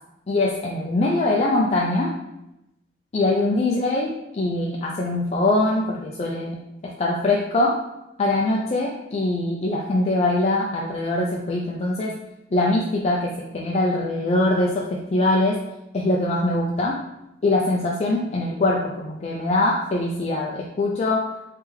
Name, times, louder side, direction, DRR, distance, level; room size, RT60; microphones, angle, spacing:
voice 1, 0.3-2.1 3.1-4.1 4.3-7.8 8.2-12.1 12.5-15.6 15.9-17.0 17.4-21.3, left 2 dB, 35° left, -2 dB, 0.4 m, -22 dB
3.3 x 3.2 x 3.5 m, 0.89 s
head